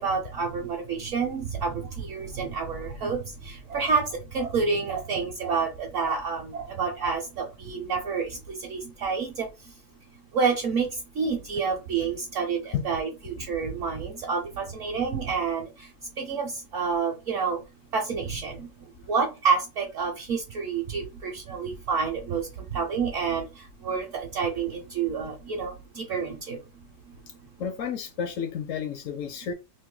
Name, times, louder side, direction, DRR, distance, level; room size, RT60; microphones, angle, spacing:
voice 1, 0.0-9.7 10.3-17.6 17.9-18.7 19.0-27.1, right 5 dB, 60° right, 1.0 m, -29 dB
voice 2, 27.6-29.5, left 7 dB, 70° left, 0.8 m, -31 dB
3.0 x 2.6 x 3.7 m
omnidirectional pair, 1.7 m